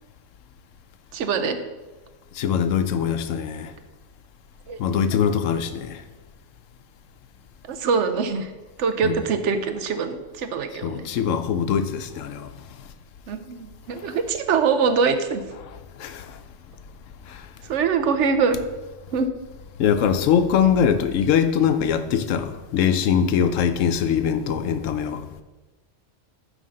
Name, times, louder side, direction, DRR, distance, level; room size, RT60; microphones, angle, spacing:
voice 1, 1.1-1.6 4.7-4.8 5.1-5.2 7.7-8.5 8.8-11.1 13.3-15.4 17.6-18.6 19.1-19.3, right 5 dB, 70° right, 0.9 m, -23 dB
voice 2, 2.3-3.7 4.8-6.0 9.0-9.2 10.8-12.5 16.0-16.4 17.2-17.5 19.8-25.3, left 8 dB, 80° left, 1.0 m, -22 dB
9.2 x 3.4 x 6.3 m
omnidirectional pair, 1.3 m